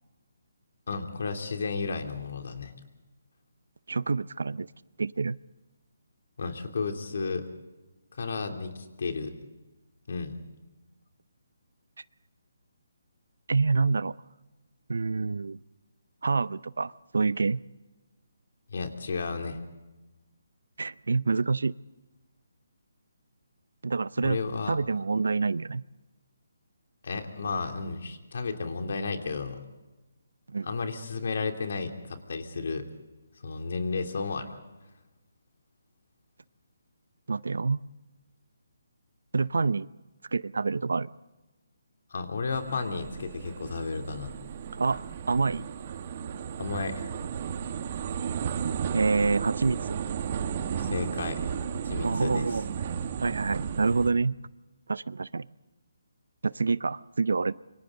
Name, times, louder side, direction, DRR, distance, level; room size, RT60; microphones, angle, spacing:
voice 1, 0.9-2.7 6.4-7.4 8.1-9.3 10.1-10.4 18.7-19.6 24.2-24.8 27.0-29.6 30.6-32.9 33.4-34.5 42.1-44.4 46.6-47.0 50.8-52.6, left 4 dB, 60° left, 5 dB, 3.0 m, -33 dB
voice 2, 3.9-4.7 5.0-5.4 13.5-14.1 14.9-15.6 16.2-17.6 20.8-21.7 23.8-24.4 24.7-25.8 30.5-30.7 37.3-37.8 39.3-39.9 40.3-41.1 44.7-45.7 48.9-50.0 52.0-52.6 53.2-54.3 54.9-55.5 56.4-57.5, right 4 dB, 80° right, 20 dB, 0.6 m, -27 dB
sound 1, 42.5-54.1, right 7 dB, 35° right, 1.6 m, -34 dB
27.5 x 24.5 x 3.9 m, 1.1 s
hypercardioid pair, 165°, 0 cm